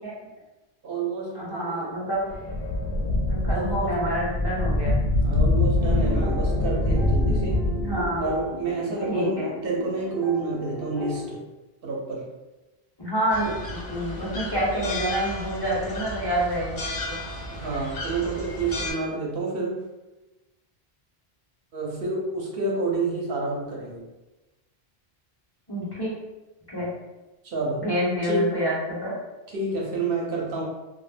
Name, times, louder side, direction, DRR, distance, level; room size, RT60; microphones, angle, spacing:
voice 1, 0.8-1.9 3.5-3.9 5.2-7.6 8.2-11.4 11.8-12.2 17.5-19.8 21.7-24.0 27.4-27.9 28.2-28.5 29.5-30.6, right 3 dB, 65° right, -3 dB, 0.8 m, -29 dB
voice 2, 1.3-2.3 3.2-4.9 7.7-8.2 9.1-9.5 13.0-17.2 25.7-26.1 26.7-26.9 27.8-29.1, equal, 30° left, -8 dB, 0.6 m, -27 dB
sound 1, 2.3-8.4, left 2 dB, 80° left, 0.8 m, -24 dB
sound 2, 5.7-11.2, equal, 25° right, 0.6 m, -35 dB
sound 3, 13.3-18.9, left 1 dB, 55° left, 0.9 m, -34 dB
2.1 x 2.0 x 3.2 m, 1.1 s
omnidirectional pair, 1.0 m